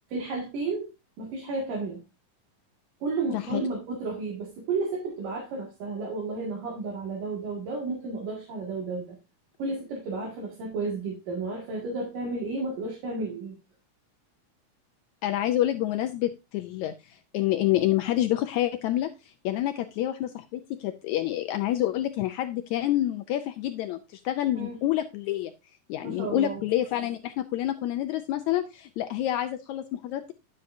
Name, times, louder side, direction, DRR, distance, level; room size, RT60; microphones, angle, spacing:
voice 1, 0.1-0.9 1.2-2.0 3.0-9.2 9.6-13.6 24.5-24.8 26.0-26.6, right 3 dB, 75° right, -2 dB, 3.6 m, -32 dB
voice 2, 3.3-3.7 15.2-25.5 25.9-30.3, left 13 dB, 80° left, 7 dB, 1.7 m, -28 dB
10.5 x 7.8 x 2.6 m, 0.27 s
omnidirectional pair, 3.8 m